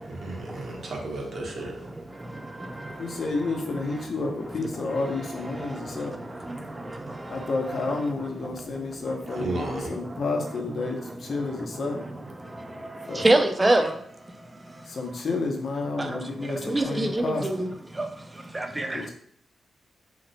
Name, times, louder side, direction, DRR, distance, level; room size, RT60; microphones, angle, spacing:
voice 1, 0.1-1.7 9.4-9.9, right 2 dB, 60° right, -1 dB, 0.8 m, -33 dB
voice 2, 3.0-6.2 7.3-12.0 13.1-13.3 14.9-17.6 18.9-19.1, left 3 dB, 60° left, 2 dB, 0.7 m, -30 dB
voice 3, 13.2-13.9 16.0-16.1 16.7-17.7 18.0-18.1 18.5-19.0, right 1 dB, 20° right, 6 dB, 0.4 m, -23 dB
2.9 x 2.1 x 4.0 m, 0.67 s
cardioid pair, 90°, 0 cm